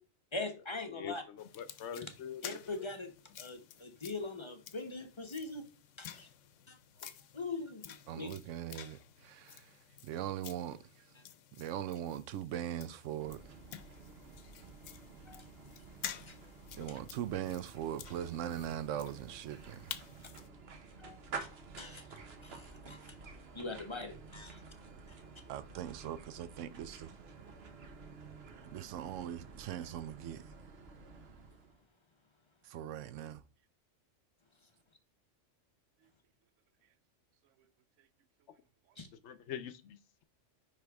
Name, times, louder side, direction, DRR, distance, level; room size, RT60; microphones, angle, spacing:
voice 1, 0.3-1.2 1.9-2.1 2.4-3.1 3.4-5.6 6.0-6.3 6.7-6.8 7.3-8.3 15.3-15.4 16.3-16.4 21.0-21.5 21.8-22.1 22.4-23.2 23.5-24.6 39.0-39.1, left 3 dB, 30° left, 0.7 m, -42 dB
sound 1, 1.4-20.5, left 10 dB, 90° left, 1.0 m, -51 dB
voice 2, 1.6-2.6 39.2-40.0, left 9 dB, 75° left, 0.9 m, -43 dB
voice 3, 8.1-9.8 10.0-10.9 11.6-13.4 16.8-19.9 25.5-27.1 28.5-30.4 32.6-33.4, right 11 dB, 85° right, 0.9 m, -40 dB
sound 2, 13.2-31.8, right 4 dB, 60° right, 1.1 m, -51 dB
9.6 x 3.4 x 3.4 m
omnidirectional pair, 1.3 m